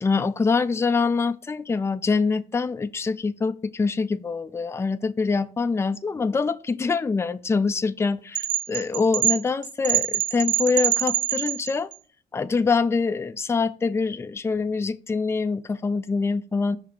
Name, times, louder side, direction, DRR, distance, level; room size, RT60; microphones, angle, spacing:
voice 1, 0.0-11.9 12.3-16.8, left 4 dB, 15° left, 0.3 m, -24 dB
sound 1, 8.4-11.9, right 14 dB, 65° right, 0.4 m, -24 dB
5.6 x 3.5 x 4.9 m
cardioid pair, 90°, 20 cm